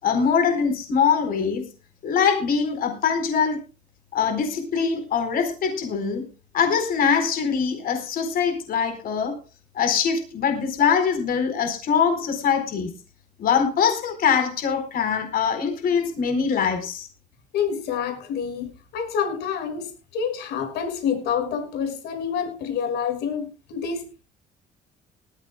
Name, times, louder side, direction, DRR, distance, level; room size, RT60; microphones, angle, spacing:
voice 1, 0.0-1.7 2.0-3.6 4.1-6.3 6.5-9.4 9.7-12.9 13.4-17.1, left 6 dB, 60° left, 4.3 m, -23 dB
voice 2, 17.5-24.1, left 7 dB, 80° left, 5.9 m, -28 dB
19.5 x 15.0 x 2.2 m
cardioid pair, 110°, 17 cm